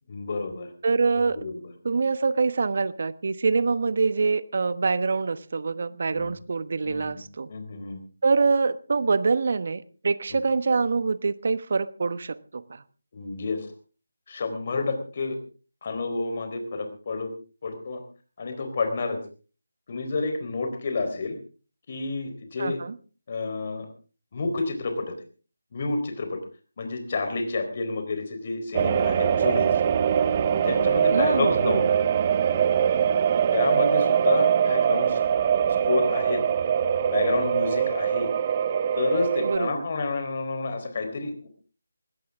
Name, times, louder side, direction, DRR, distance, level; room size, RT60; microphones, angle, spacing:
voice 1, 0.1-0.7 1.2-1.5 6.1-6.3 6.8-7.2 7.5-8.0 10.3-10.4 13.1-13.7 14.3-15.4 15.8-17.3 17.6-18.0 18.4-19.2 19.9-21.4 21.9-22.8 23.3-23.9 24.3-25.0 25.7-26.4 26.8-29.7 30.5-31.8 33.5-35.2 35.8-36.4 37.1-38.3 39.0-41.5, left 3 dB, 40° left, 6 dB, 4.0 m, -29 dB
voice 2, 0.8-1.4 1.8-7.5 8.2-12.8 22.6-23.0 31.1-32.0 39.4-39.9, right 4 dB, 50° right, 16 dB, 1.1 m, -25 dB
sound 1, 28.7-39.6, right 8 dB, 30° right, 0.9 m, -23 dB
20.0 x 16.5 x 3.6 m, 0.37 s
figure-of-eight pair, 160°, 0 cm